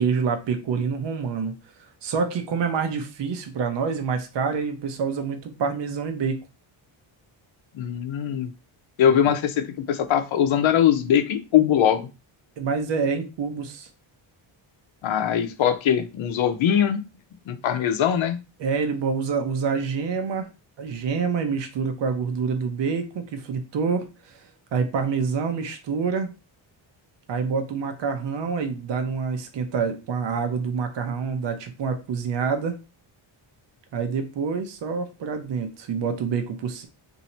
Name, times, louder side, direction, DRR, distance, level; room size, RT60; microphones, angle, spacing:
voice 1, 0.0-1.5 2.0-6.4 12.6-13.9 18.6-20.5 20.8-26.3 27.3-32.7 33.9-36.9, right 5 dB, 60° right, 6 dB, 0.8 m, -27 dB
voice 2, 7.7-8.5 9.0-12.1 15.0-17.0 17.5-18.4, left 9 dB, 65° left, 8 dB, 0.7 m, -21 dB
2.7 x 2.7 x 4.2 m, 0.29 s
cardioid pair, 105°, 50 cm